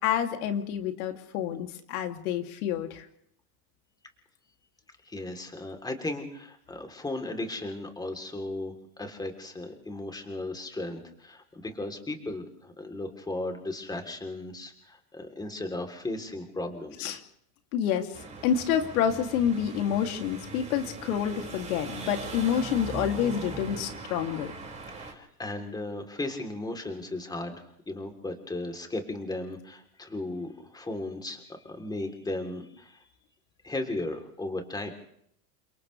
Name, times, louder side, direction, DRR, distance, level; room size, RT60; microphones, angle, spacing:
voice 1, 0.0-3.0 17.0-17.2 17.7-18.2 18.4-24.5, left 9 dB, 65° left, 5 dB, 2.9 m, -28 dB
voice 2, 5.1-17.1 25.0-33.0 33.6-34.9, left 2 dB, 10° left, 5 dB, 3.4 m, -36 dB
sound 1, 18.1-25.1, right 4 dB, 15° right, 5.5 m, -40 dB
29.5 x 26.5 x 3.4 m, 0.70 s
supercardioid pair, 135°, 47 cm